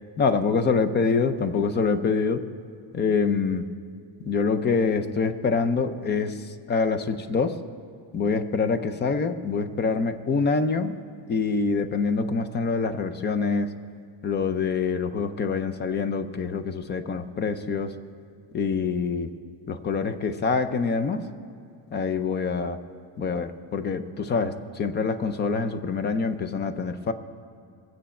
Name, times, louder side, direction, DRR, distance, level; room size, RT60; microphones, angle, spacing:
voice 1, 0.2-2.4 2.9-3.7 4.2-7.6 8.1-10.9 11.3-13.7 14.2-17.9 18.5-19.3 19.7-21.2 21.9-22.8 23.2-27.1, left 5 dB, 25° left, 11 dB, 0.4 m, -25 dB
22.0 x 9.2 x 4.3 m, 2.4 s
cardioid pair, 175°, 46 cm